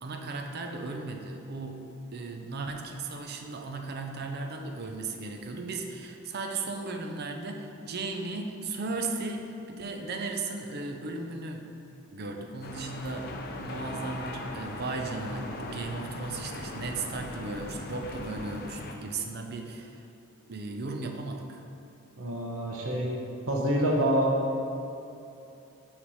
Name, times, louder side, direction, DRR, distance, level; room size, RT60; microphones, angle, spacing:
voice 1, 0.0-11.7 12.1-13.3 13.6-20.1 20.5-21.6, right 3 dB, 50° right, 4 dB, 0.5 m, -36 dB
sound 1, 12.6-18.9, left 2 dB, 45° left, 0.5 m, -39 dB
voice 2, 22.2-23.1 23.5-24.6, right 1 dB, 80° right, -2 dB, 0.9 m, -26 dB
5.9 x 3.3 x 5.4 m, 2.7 s
head